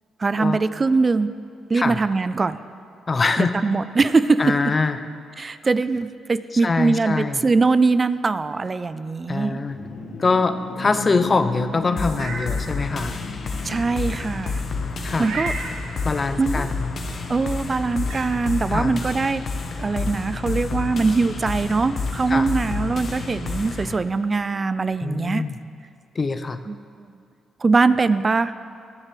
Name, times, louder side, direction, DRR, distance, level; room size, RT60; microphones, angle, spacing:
voice 1, 0.2-1.4 1.7-2.6 3.4-4.6 5.4-9.6 13.6-14.6 15.2-15.5 16.4-16.7 17.3-19.4 19.8-25.4 26.7-27.1 27.6-28.5, right 4 dB, 30° right, 14 dB, 0.3 m, -22 dB
voice 2, 3.1-3.5 4.4-5.0 5.4-5.5 6.6-7.4 9.3-9.8 10.2-13.2 15.0-15.3 16.0-16.9 18.7-19.0 22.3-22.5 25.0-25.6 26.2-26.6, left 4 dB, 35° left, 10 dB, 0.6 m, -23 dB
sound 1, 9.2-14.8, left 3 dB, 75° left, 1.7 m, -36 dB
sound 2, 12.0-24.0, left 4 dB, 50° left, 1.0 m, -29 dB
Meow, 12.0-12.5 13.0-13.1 15.1-15.8 17.4-17.5 18.0-18.3, right 3 dB, 90° right, 1.4 m, -32 dB
19.5 x 7.3 x 3.3 m, 2.3 s
cardioid pair, 75°, 0 cm